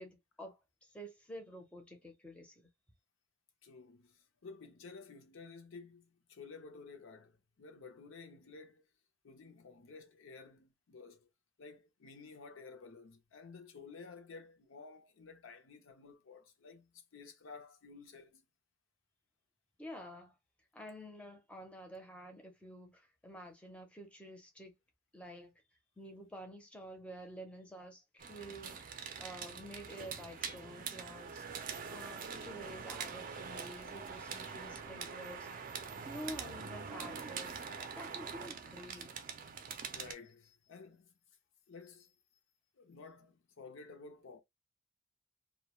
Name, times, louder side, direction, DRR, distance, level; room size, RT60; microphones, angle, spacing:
voice 1, 0.0-2.7 19.8-20.3 20.7-24.8 25.1-25.5 26.0-31.4 31.9-35.5 36.0-39.1, equal, 5° left, 0.6 m, -49 dB
voice 2, 3.6-8.9 9.2-11.3 11.6-18.4 39.9-41.1 41.7-42.1 42.8-44.4, left 4 dB, 75° left, 0.6 m, -53 dB
sound 1, 28.2-40.1, right 6 dB, 45° right, 0.4 m, -44 dB
2.2 x 2.1 x 2.9 m
head